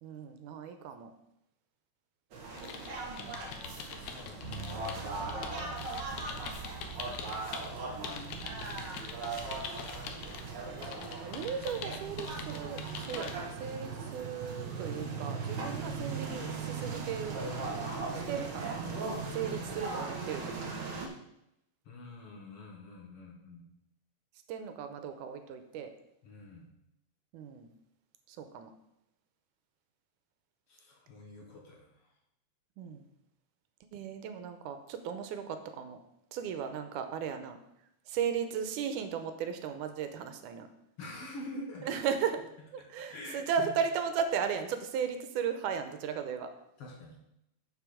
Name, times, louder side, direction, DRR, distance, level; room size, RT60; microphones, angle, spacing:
voice 1, 0.0-1.1 5.6-6.1 7.8-8.8 10.7-17.7 18.1-18.9 19.3-21.0 24.5-25.9 27.3-27.7 28.3-28.7 32.8-33.1 33.9-36.0 36.3-37.6 38.1-40.7 41.8-42.4 42.7-46.5, right 7 dB, 85° right, 8 dB, 2.2 m, -36 dB
sound 1, 2.3-21.1, right 4 dB, 55° right, 1.2 m, -39 dB
sound 2, 2.5-7.7 8.0-10.4 10.8-13.4, left 6 dB, 75° left, 2.1 m, -44 dB
voice 2, 3.0-5.1 9.9-10.3 19.3-19.6 21.8-23.6 26.2-26.7 30.7-32.1 41.0-41.9 42.8-43.7 46.8-47.2, left 2 dB, 55° left, -1 dB, 2.1 m, -47 dB
Bass guitar, 4.4-14.2, right 3 dB, 20° left, 1.9 m, -50 dB
6.9 x 6.8 x 4.9 m, 0.81 s
omnidirectional pair, 3.6 m